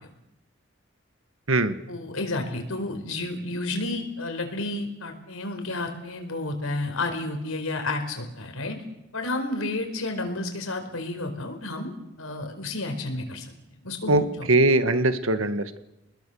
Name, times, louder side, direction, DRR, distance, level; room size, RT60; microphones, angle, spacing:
voice 1, 1.9-8.8 9.1-11.9 12.2-13.5 13.8-14.2, left 2 dB, 90° left, 6 dB, 4.8 m, -31 dB
voice 2, 14.1-15.8, right 2 dB, 80° right, 10 dB, 1.6 m, -21 dB
29.0 x 21.0 x 7.1 m, 0.93 s
head